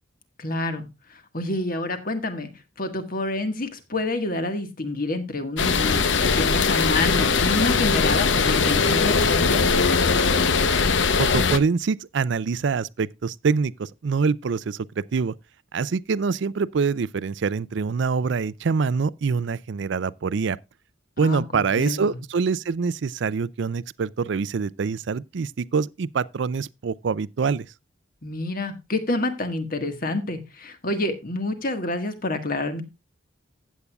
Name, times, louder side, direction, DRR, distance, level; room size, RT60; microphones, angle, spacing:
voice 1, 0.4-2.5 2.8-9.6 21.2-22.2 28.2-32.8, left 2 dB, 45° left, 1.6 m, -28 dB
sound 1, 5.6-11.6, left 4 dB, 65° left, 0.8 m, -20 dB
voice 2, 11.2-15.3 15.7-20.6 21.2-27.7, right 5 dB, 60° right, 0.4 m, -25 dB
15.0 x 8.3 x 2.3 m
head